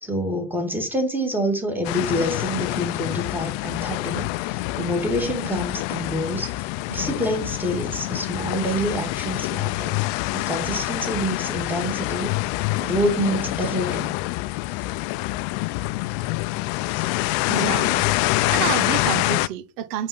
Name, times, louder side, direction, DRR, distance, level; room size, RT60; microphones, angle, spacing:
voice 1, 0.0-9.9 10.3-12.3 12.8-14.1 14.8-14.9 16.9-17.1, equal, 5° right, 1.8 m, -27 dB
sound 1, 1.8-19.5, left 19 dB, 65° left, 0.5 m, -26 dB
voice 2, 17.5-18.1 18.5-20.1, right 12 dB, 90° right, 0.8 m, -28 dB
5.2 x 3.6 x 5.6 m
supercardioid pair, 100°, 49 cm